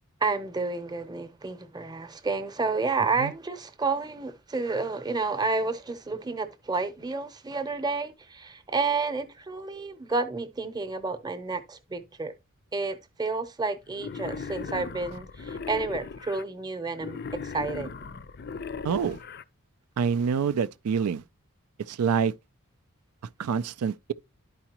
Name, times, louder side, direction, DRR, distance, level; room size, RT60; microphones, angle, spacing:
voice 1, 0.2-12.3 12.7-17.9, right 3 dB, 20° right, 0.7 m, -30 dB
Wild animals, 13.9-16.4 16.9-19.4, left 5 dB, 45° left, 0.4 m, -38 dB
voice 2, 18.8-19.2 20.0-21.2 21.9-22.3 23.4-24.1, right 6 dB, 90° right, 0.4 m, -26 dB
11.5 x 4.8 x 2.9 m
head